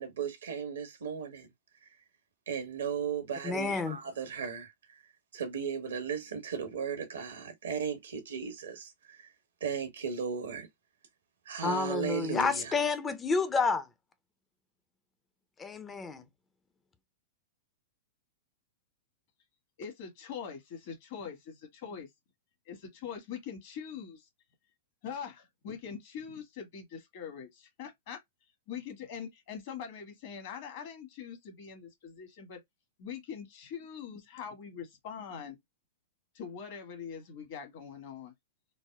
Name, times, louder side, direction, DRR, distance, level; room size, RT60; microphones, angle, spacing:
voice 1, 0.0-1.5 1.8-2.0 2.5-5.0 5.3-9.3 9.6-10.7 11.4-12.7, right 6 dB, 80° right, 1.2 m, -36 dB
voice 2, 3.4-4.0 11.6-13.9 15.6-16.2, left 4 dB, 20° left, 0.6 m, -30 dB
voice 3, 19.8-22.1 22.7-24.2 25.0-28.2 28.7-32.6 33.0-35.6 36.3-38.3, left 7 dB, 55° left, 1.5 m, -43 dB
4.0 x 2.2 x 2.2 m
hypercardioid pair, 110°, 0 cm